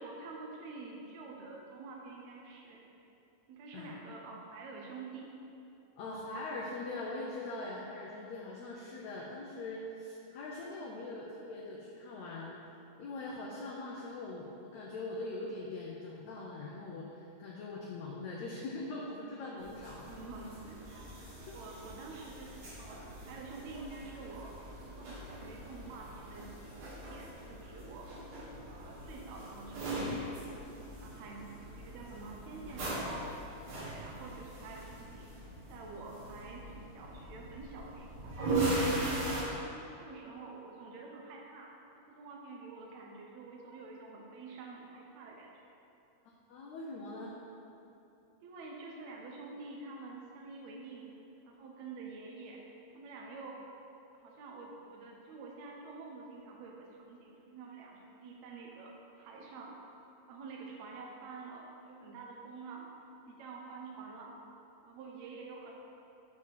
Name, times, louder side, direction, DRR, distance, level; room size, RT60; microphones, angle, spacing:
voice 1, 0.0-2.8 3.5-5.3 19.4-19.7 20.1-28.1 28.7-30.5 31.0-33.3 33.8-35.3 35.7-38.3 38.8-39.6 40.0-45.5 48.4-51.1 51.4-52.6 52.9-53.6 54.2-59.8 60.3-62.9 63.3-64.3 64.8-65.7, right 3 dB, 75° right, -1 dB, 1.7 m, -48 dB
voice 2, 6.0-12.6 13.0-20.1 21.5-21.6 46.5-47.3, left 2 dB, 75° left, -3 dB, 1.7 m, -42 dB
sound 1, 19.6-39.4, right 2 dB, 60° right, 3.0 m, -40 dB
7.2 x 4.2 x 6.3 m, 2.8 s
omnidirectional pair, 3.9 m